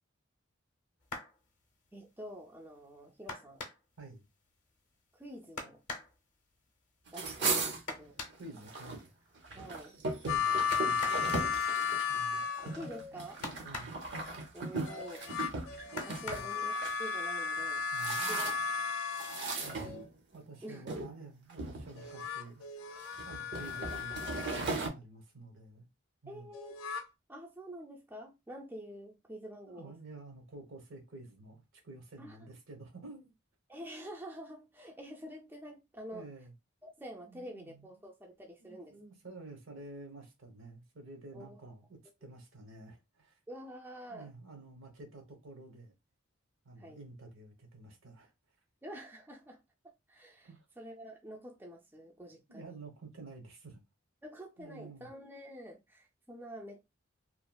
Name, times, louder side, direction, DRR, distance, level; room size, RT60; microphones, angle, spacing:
sound 1, 1.0-1.4 3.3-4.0 5.6-6.2 7.9-8.4 10.7-11.3 13.4-14.1 16.0-16.6 17.7-17.8 18.2-18.4, left 3 dB, 40° left, 0.6 m, -42 dB
voice 1, 1.9-3.7 5.1-5.8 7.1-8.2 9.5-10.0 12.6-13.4 14.5-15.3 16.0-16.7 17.0-17.9 18.3-18.7 20.6-20.8 26.3-26.8 27.3-29.9 32.2-32.4 33.7-36.3 36.8-39.0 41.3-41.6 43.5-44.3 46.8-47.0 48.8-49.6 49.8-50.5 50.8-52.8 54.2-56.9, equal, 10° right, 0.3 m, -47 dB
sound 2, 7.1-9.0 9.4-17.0 17.6-18.8 19.2-20.4 20.9-21.1 21.5-22.3 22.9-24.9, right 3 dB, 55° right, 0.6 m, -38 dB
voice 2, 8.4-9.1 10.2-11.4 12.1-12.4 13.6-13.9 16.2-16.5 17.9-18.4 19.6-20.0 20.3-22.7 23.2-25.9 26.2-26.5 29.7-33.3 36.1-36.5 37.2-38.1 38.6-43.4 44.1-45.9 46.6-48.3 50.4-50.6 52.5-53.8 54.6-55.1, right 2 dB, 80° right, 0.9 m, -50 dB
sound 3, 10.3-13.1 14.9-20.1 22.0-24.8 26.5-27.0, left 6 dB, 80° left, 0.4 m, -35 dB
2.9 x 2.3 x 2.2 m
head